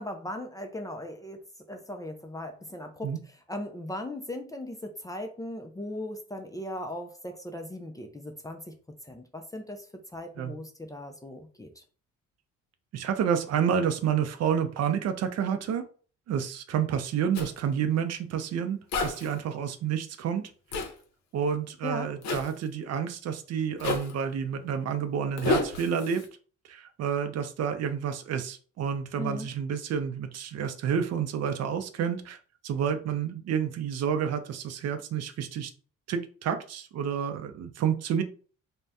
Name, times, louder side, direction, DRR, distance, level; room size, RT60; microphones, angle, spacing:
voice 1, 0.0-1.4 1.7-3.1 3.5-8.7 9.0-11.8 21.8-22.1 29.2-29.5, left 1 dB, 10° left, 4 dB, 0.4 m, -38 dB
voice 2, 12.9-15.8 16.3-20.5 21.3-26.3 26.6-32.4 32.6-35.7 36.1-38.2, right 7 dB, 60° right, 8 dB, 0.5 m, -29 dB
Zipper (clothing), 17.3-17.5 18.9-19.3 20.7-20.9 22.2-22.5 23.8-24.1 25.4-26.3, left 2 dB, 65° left, 0.7 m, -29 dB
2.6 x 2.1 x 3.4 m, 0.41 s
cardioid pair, 90°, 30 cm